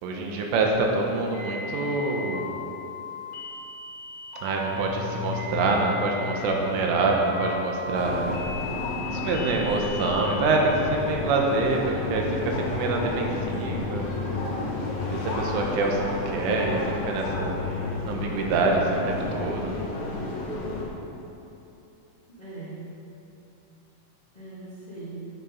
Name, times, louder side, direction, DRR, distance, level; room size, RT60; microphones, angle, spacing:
voice 1, 0.0-2.5 4.4-8.3 9.0-14.1 15.1-17.6 18.1-19.8, right 3 dB, 80° right, 0 dB, 3.6 m, -26 dB
sound 1, 1.3-10.3, left 3 dB, 45° left, 1.9 m, -38 dB
sound 2, 4.6-8.7, left 8 dB, 90° left, 3.3 m, -38 dB
sound 3, 7.9-20.9, left 2 dB, 70° left, 4.3 m, -31 dB
voice 2, 9.2-10.2 22.4-22.9 24.3-25.3, right 2 dB, 10° left, -10 dB, 1.9 m, -39 dB
10.5 x 9.3 x 5.5 m, 2.8 s
omnidirectional pair, 5.7 m